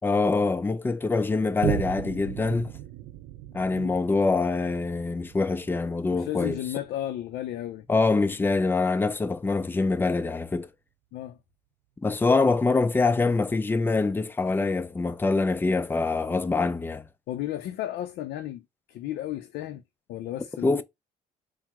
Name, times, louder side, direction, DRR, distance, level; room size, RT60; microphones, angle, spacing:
voice 1, 0.0-2.7 3.5-6.6 7.9-10.7 12.0-17.1 20.6-20.8, left 3 dB, 10° left, 0.4 m, -24 dB
Boom, 1.6-8.5 9.1-9.2, right 13 dB, 80° right, 0.4 m, -37 dB
voice 2, 6.1-7.9 11.1-11.4 17.3-19.8 20.1-20.8, left 13 dB, 75° left, 0.4 m, -34 dB
4.4 x 2.0 x 3.5 m
cardioid pair, 110°, 17 cm